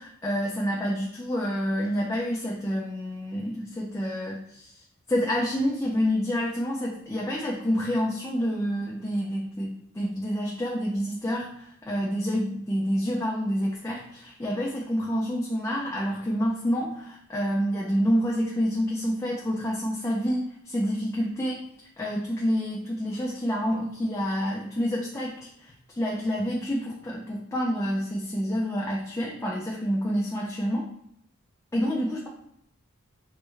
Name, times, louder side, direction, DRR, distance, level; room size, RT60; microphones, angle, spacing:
voice 1, 0.0-4.7 5.1-21.6 22.0-30.9 31.7-32.3, equal, 15° left, -4 dB, 0.3 m, -28 dB
3.3 x 2.1 x 3.1 m, 0.74 s
head